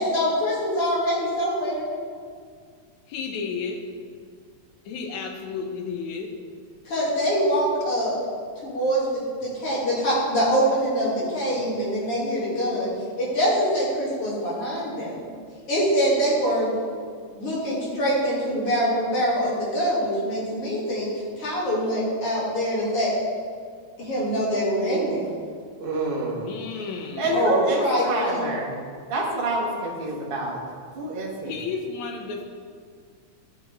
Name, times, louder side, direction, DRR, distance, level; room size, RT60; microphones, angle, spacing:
voice 1, 0.0-1.9 6.8-8.1 8.6-12.9 13.2-15.3 15.7-16.7 17.3-21.1 21.4-23.1 24.0-25.3 27.3-28.5, equal, 50° left, -7 dB, 3.5 m, -24 dB
voice 2, 3.1-3.8 4.9-6.3 26.4-27.4 31.5-32.4, left 5 dB, 70° left, 3 dB, 2.2 m, -32 dB
voice 3, 25.8-26.5 27.2-28.7 29.1-30.6 30.9-31.5, right 2 dB, 40° right, -3 dB, 0.7 m, -27 dB
13.0 x 7.2 x 3.6 m, 2.1 s
omnidirectional pair, 3.6 m